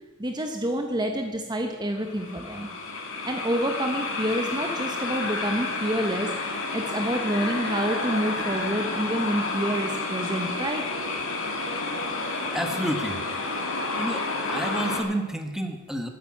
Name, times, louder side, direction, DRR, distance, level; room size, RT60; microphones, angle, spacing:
voice 1, 0.2-2.7 3.2-6.3 6.7-10.8, right 1 dB, 20° right, 4 dB, 1.0 m, -28 dB
sound 1, 2.0-15.0, left 3 dB, 70° left, 2.5 m, -30 dB
voice 2, 12.3-13.2 14.0-16.1, right 1 dB, ahead, 5 dB, 1.3 m, -30 dB
14.5 x 9.2 x 7.4 m, 1.2 s
head